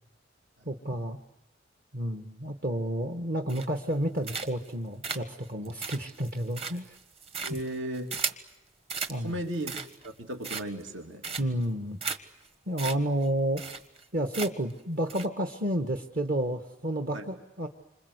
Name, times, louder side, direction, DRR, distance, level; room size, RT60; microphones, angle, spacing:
voice 1, 0.6-1.2 1.9-7.0 9.1-9.3 11.4-12.0 12.7-13.6 14.1-17.7, right 1 dB, 45° right, 4 dB, 1.4 m, -30 dB
sound 1, 3.5-3.9 4.2-4.7 5.0-8.5 8.9-9.2 9.5-10.1 10.4-10.9 11.2-11.6 12.0-12.2 12.5-12.6 12.8-13.0 13.2-13.3 13.6-14.0 14.3-14.7 15.1-15.3, right 5 dB, 30° right, 1.3 m, -35 dB
voice 2, 7.4-8.1 9.2-9.7 10.2-11.3 17.1-17.2, right 1 dB, 75° right, 4 dB, 2.9 m, -35 dB
28.0 x 26.0 x 8.0 m, 0.93 s
head